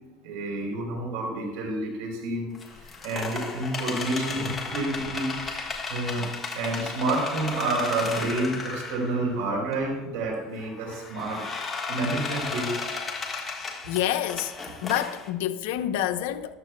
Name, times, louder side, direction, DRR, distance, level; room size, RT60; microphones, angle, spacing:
voice 1, 0.2-6.2 6.5-11.5 11.9-12.7, right 2 dB, 90° right, 4.1 m, -29 dB
sound 1, 2.5-9.3 9.7-9.8 10.6-15.3, left 4 dB, 20° left, 1.5 m, -34 dB
voice 2, 13.9-14.5 14.8-16.5, left 12 dB, 85° left, 0.8 m, -27 dB
14.0 x 13.0 x 2.3 m
cardioid pair, 135°, 0 cm